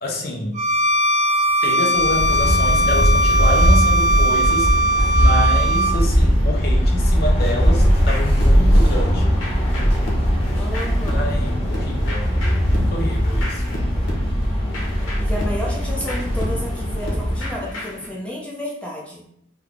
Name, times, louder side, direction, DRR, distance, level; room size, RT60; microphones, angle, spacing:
voice 1, 0.0-0.5 1.6-4.8 5.2-9.4 11.1-12.3 12.7-13.6, left 1 dB, 50° left, 0 dB, 0.7 m, -27 dB
Bowed string instrument, 0.5-6.0, equal, 35° right, 0.5 m, -19 dB
sound 1, 1.9-17.7, equal, 30° left, 1.0 m, -19 dB
sound 2, 7.4-18.1, left 1 dB, 90° left, 1.1 m, -33 dB
voice 2, 10.5-11.3 15.2-19.4, left 1 dB, 5° left, -4 dB, 0.7 m, -31 dB
3.5 x 2.3 x 3.6 m, 0.72 s
head